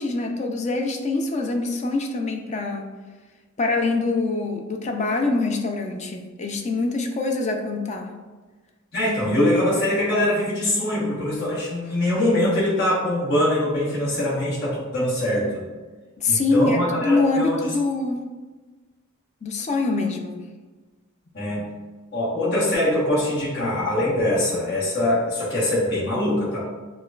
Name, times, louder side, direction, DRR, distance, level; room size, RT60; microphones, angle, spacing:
voice 1, 0.0-2.9 3.6-8.1 16.2-18.2 19.4-20.4, left 3 dB, 35° left, 3 dB, 0.4 m, -24 dB
voice 2, 8.9-15.6 16.3-17.6 21.3-21.6 22.1-26.6, left 1 dB, 55° left, -8 dB, 1.1 m, -23 dB
6.4 x 2.2 x 2.3 m, 1.3 s
head